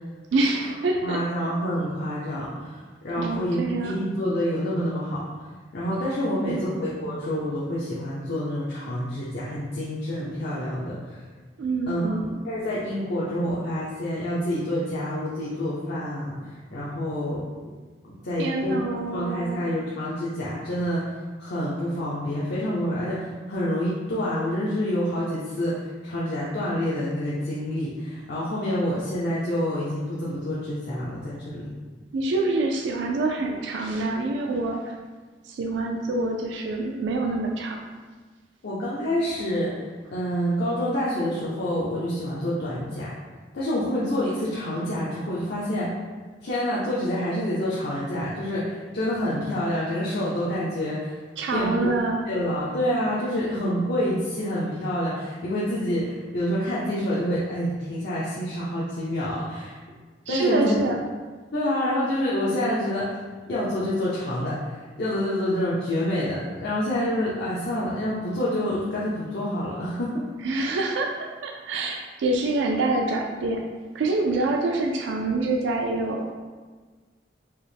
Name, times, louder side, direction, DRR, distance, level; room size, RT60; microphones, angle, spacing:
voice 1, 0.3-1.2 3.2-4.0 6.4-6.8 11.6-12.4 18.4-19.7 32.1-35.0 35.4-37.8 51.4-52.3 60.3-61.0 70.4-73.6 73.9-76.3, right 2 dB, 80° right, 1 dB, 0.3 m, -26 dB
voice 2, 1.0-3.6 3.8-5.2 5.7-11.3 11.9-17.4 18.2-18.9 19.1-31.7 38.6-39.8 40.1-43.1 43.5-46.0 46.4-51.2 51.5-51.9 52.3-59.8 60.3-60.8 61.5-63.2 63.5-70.3, equal, 65° left, -8 dB, 0.6 m, -27 dB
4.4 x 2.0 x 3.3 m, 1.4 s
head